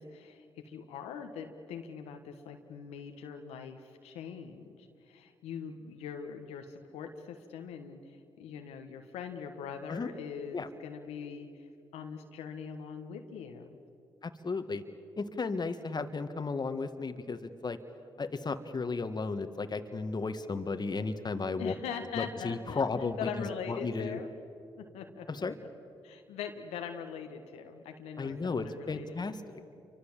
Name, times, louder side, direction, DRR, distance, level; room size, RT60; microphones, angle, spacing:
voice 1, 0.0-11.7 11.9-13.8 21.6-24.3 24.8-25.4 26.0-29.2, left 7 dB, 85° left, 5 dB, 1.4 m, -42 dB
voice 2, 14.2-14.8 15.2-17.8 18.2-21.7 22.1-24.2 25.3-25.6 28.2-29.4, left 4 dB, 40° left, 8 dB, 1.6 m, -34 dB
28.0 x 24.5 x 7.5 m, 2.7 s
hypercardioid pair, 45°, 10 cm